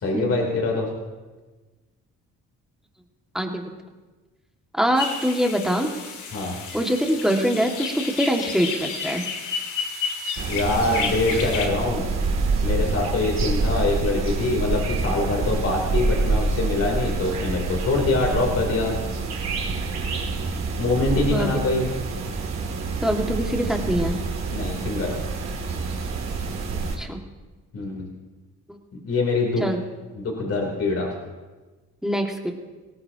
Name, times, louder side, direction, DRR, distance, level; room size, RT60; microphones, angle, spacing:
voice 1, 0.0-0.9 6.3-6.5 10.5-12.1 12.6-18.9 20.8-21.9 24.5-25.1 27.7-28.1 29.0-29.6 30.1-31.1, left 2 dB, 50° left, 0 dB, 3.4 m, -24 dB
voice 2, 3.3-3.7 4.7-5.9 6.7-9.2 21.3-21.5 23.0-24.2 27.0-27.2 28.7-28.8 29.6-29.8 32.0-32.5, equal, ahead, 1 dB, 2.1 m, -24 dB
sound 1, 5.0-11.7, left 5 dB, 80° left, 2.4 m, -31 dB
sound 2, 10.4-27.0, right 3 dB, 60° right, 2.7 m, -27 dB
20.0 x 18.0 x 2.9 m, 1.3 s
cardioid pair, 90°, 30 cm